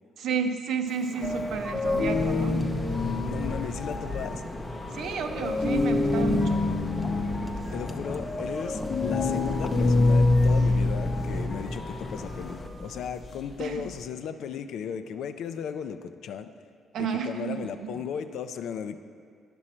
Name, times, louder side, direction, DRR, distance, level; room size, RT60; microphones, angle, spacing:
voice 1, 0.2-2.6 4.9-6.6 13.6-13.8 16.9-18.0, right 6 dB, 75° right, 6 dB, 0.6 m, -31 dB
Wind, 0.9-12.7, equal, 5° left, 0.6 m, -40 dB
sound 1, 1.2-14.0, left 2 dB, 40° left, 0.7 m, -27 dB
voice 2, 3.2-4.4 7.7-16.5 17.0-19.0, left 7 dB, 75° left, 10 dB, 0.4 m, -36 dB
9.7 x 6.2 x 4.3 m, 2.2 s
cardioid pair, 90°, 0 cm